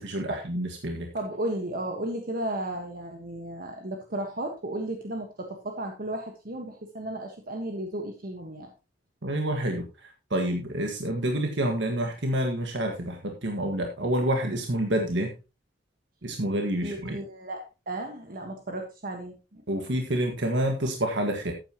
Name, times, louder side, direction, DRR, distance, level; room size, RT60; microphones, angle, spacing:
voice 1, 0.0-1.1 9.2-9.8 10.3-15.3 16.2-17.2 19.7-21.5, right 1 dB, 75° right, 3 dB, 1.7 m, -28 dB
voice 2, 1.1-8.7 16.8-19.6, right 1 dB, 50° right, 3 dB, 1.4 m, -34 dB
12.5 x 9.1 x 3.0 m, 0.29 s
head